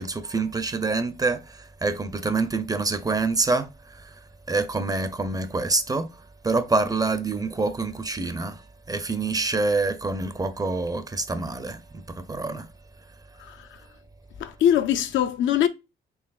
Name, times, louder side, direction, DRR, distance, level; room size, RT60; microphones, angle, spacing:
voice 1, 0.0-12.7, right 3 dB, 20° right, 0.5 m, -27 dB
voice 2, 14.4-15.7, left 10 dB, 75° left, 0.5 m, -22 dB
4.7 x 3.0 x 2.3 m
cardioid pair, 90°, 20 cm